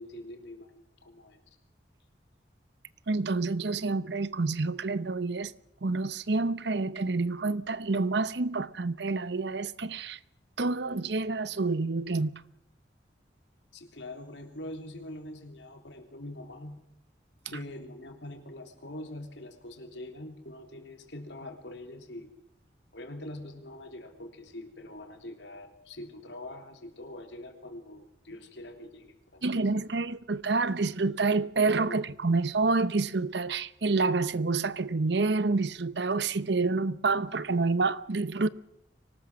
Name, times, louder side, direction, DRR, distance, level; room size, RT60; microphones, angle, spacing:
voice 1, 0.0-1.4 13.7-16.9 17.4-22.3 22.9-29.8 31.9-32.0, left 1 dB, 80° left, 3.5 m, -44 dB
voice 2, 3.1-5.5 5.8-10.2 10.6-12.4 29.4-38.5, right 3 dB, 70° right, 0.8 m, -28 dB
24.5 x 19.0 x 6.3 m
head